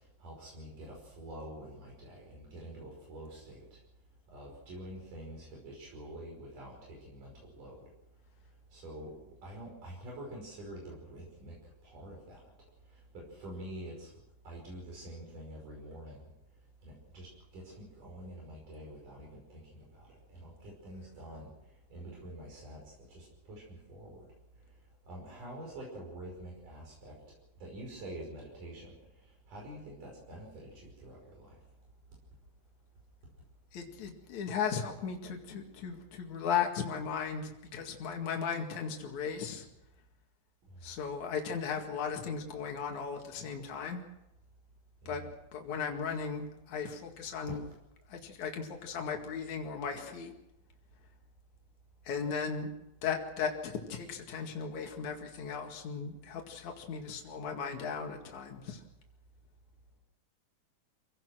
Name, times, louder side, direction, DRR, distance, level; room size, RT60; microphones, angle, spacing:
voice 1, 0.2-3.6 4.3-7.8 8.7-9.1 9.4-11.5 11.8-12.4 13.1-14.1 14.5-16.3 16.8-17.3 17.5-19.8 20.3-21.5 21.9-22.8 23.1-23.6 23.9-24.3 25.1-27.1 27.6-28.9 29.5-31.6 45.0-45.2, right 1 dB, 85° right, -2 dB, 7.0 m, -46 dB
voice 2, 33.7-39.7 40.8-44.0 45.1-47.6 48.1-50.3 52.1-52.7 53.0-58.8, left 6 dB, 65° left, 2 dB, 3.4 m, -36 dB
27.0 x 17.5 x 6.3 m, 0.88 s
omnidirectional pair, 3.6 m